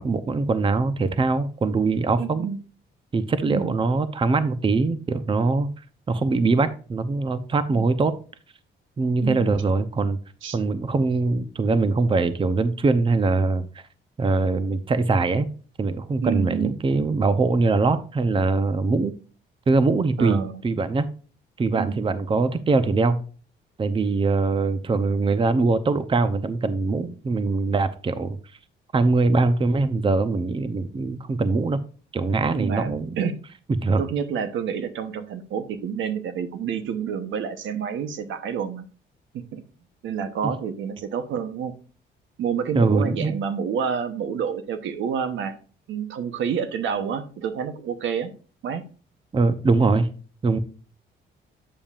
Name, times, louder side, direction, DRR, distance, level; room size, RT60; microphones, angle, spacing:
voice 1, 0.0-2.5 3.1-5.7 6.1-8.2 9.0-10.2 10.5-13.8 14.2-15.5 15.8-19.1 19.7-21.1 21.6-23.2 23.8-28.4 28.9-31.8 32.1-33.2 33.8-34.0 42.7-43.3 49.3-50.1 50.4-50.6, right 3 dB, 25° right, 12 dB, 0.7 m, -22 dB
voice 2, 2.2-2.6 3.4-3.7 7.7-7.8 9.2-9.5 10.4-10.6 16.2-16.7 20.2-20.5 21.8-22.0 32.5-33.3 34.0-38.9 39.3-39.6 40.0-41.7 42.4-45.5 45.9-48.3 48.6-48.8, right 7 dB, 75° right, 10 dB, 1.0 m, -28 dB
8.8 x 7.1 x 2.4 m, 0.38 s
cardioid pair, 90°, 20 cm